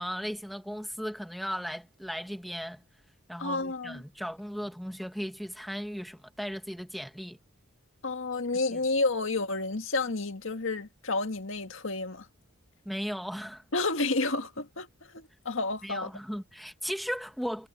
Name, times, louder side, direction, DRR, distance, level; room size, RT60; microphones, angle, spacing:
voice 1, 0.0-2.8 3.3-7.4 8.7-8.8 12.8-13.6 15.8-17.7, equal, ahead, 1.0 m, -36 dB
voice 2, 3.4-4.0 8.0-12.3 13.7-16.1, left 3 dB, 60° left, 2.0 m, -30 dB
head